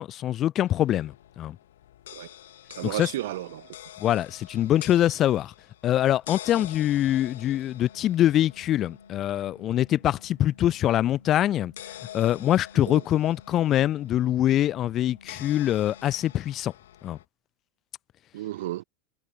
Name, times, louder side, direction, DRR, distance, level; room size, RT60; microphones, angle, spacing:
voice 1, 0.0-1.6 2.8-3.1 4.0-5.5 5.8-16.7 17.0-17.2, left 12 dB, 35° left, 0.5 m, -24 dB
sound 1, 0.6-17.2, left 12 dB, 65° left, 1.0 m, -47 dB
voice 2, 2.7-3.7 6.5-6.6 12.8-13.0 18.3-18.8, right 15 dB, 60° right, 0.4 m, -33 dB
sound 2, 6.6-16.4, left 4 dB, 85° left, 7.1 m, -54 dB
figure-of-eight pair, 85°, 0 cm